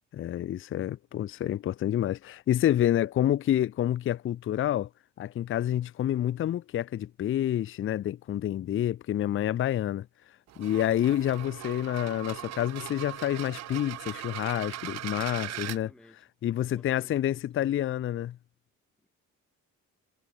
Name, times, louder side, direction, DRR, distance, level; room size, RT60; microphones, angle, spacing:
voice 1, 0.1-4.9 5.2-10.1 10.6-15.9 16.4-18.4, left 11 dB, 45° left, 0.5 m, -28 dB
sound 1, 10.5-15.8, right 14 dB, 60° right, 0.6 m, -39 dB
voice 2, 15.5-16.3 16.6-17.7 19.0-19.1, left 1 dB, 5° left, 2.8 m, -56 dB
cardioid pair, 90°, 30 cm